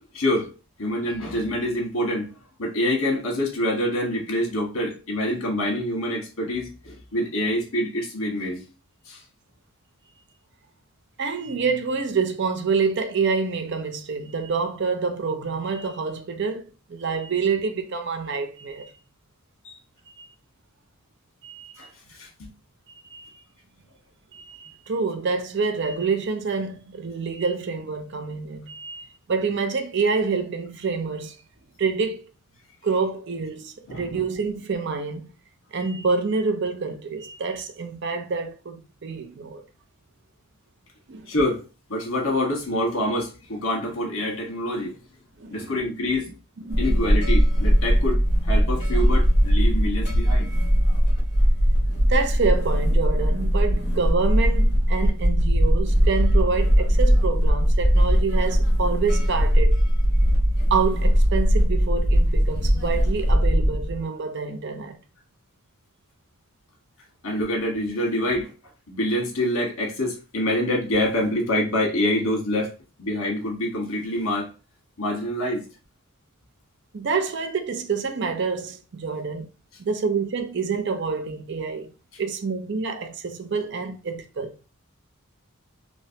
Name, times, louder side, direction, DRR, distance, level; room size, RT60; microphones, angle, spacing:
voice 1, 0.1-0.5 0.8-2.3 2.6-8.6 9.1-9.2 19.6-19.8 21.8-21.9 22.2-22.5 33.9-34.2 41.3-41.6 41.9-44.9 45.5-46.2 46.8-50.5 67.2-68.5 68.9-72.7 73.0-74.5 75.0-75.7, left 1 dB, 70° left, 1.4 m, -26 dB
voice 2, 11.2-18.9 20.2-20.3 21.4-21.7 23.0-23.4 24.3-31.4 31.8-32.3 32.8-35.3 35.7-39.6 41.1-41.3 45.4-45.8 46.6-47.0 51.9-59.8 60.7-65.0 76.9-79.5 79.8-81.9 82.2-84.5, right 4 dB, 55° right, 0.5 m, -27 dB
sound 1, 46.7-64.0, equal, 35° left, 1.7 m, -20 dB
3.2 x 2.9 x 2.8 m
head